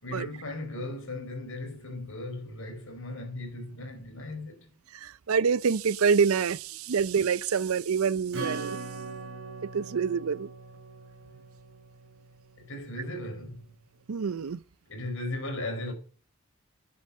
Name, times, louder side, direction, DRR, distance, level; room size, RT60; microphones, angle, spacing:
voice 1, 0.0-4.7 6.9-7.0 12.6-13.6 14.9-15.9, left 2 dB, 70° left, 4.5 m, -37 dB
voice 2, 5.0-8.8 9.7-10.5 14.1-14.6, right 6 dB, 90° right, 0.5 m, -26 dB
Acoustic guitar / Strum, 8.3-12.6, right 4 dB, 65° right, 2.9 m, -40 dB
10.5 x 7.9 x 6.4 m
head